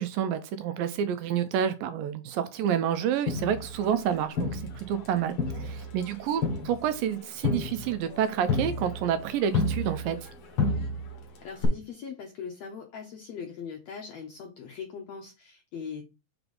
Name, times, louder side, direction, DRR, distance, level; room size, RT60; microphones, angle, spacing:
voice 1, 0.0-10.3, right 9 dB, 80° right, 2.2 m, -29 dB
Crowd, 3.3-5.1 5.4-10.3 10.6-11.2 11.6-11.7, left 3 dB, 50° left, 1.7 m, -31 dB
voice 2, 11.4-16.0, left 6 dB, 75° left, 1.5 m, -40 dB
5.7 x 3.9 x 5.2 m
omnidirectional pair, 4.3 m